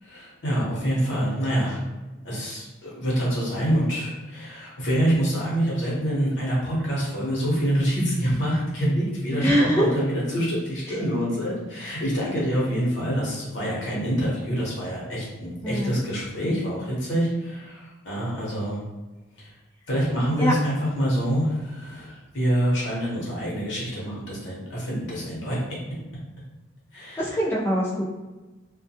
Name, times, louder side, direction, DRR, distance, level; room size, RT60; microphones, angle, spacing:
voice 1, 0.0-1.8 2.2-18.8 19.4-19.5 19.9-25.6 26.9-27.3, equal, 70° left, -6 dB, 0.9 m, -26 dB
voice 2, 9.4-9.9 10.9-11.0 15.6-16.0 20.4-20.5 27.2-28.0, equal, 10° left, -7 dB, 0.3 m, -23 dB
2.2 x 2.1 x 2.7 m, 1.2 s
head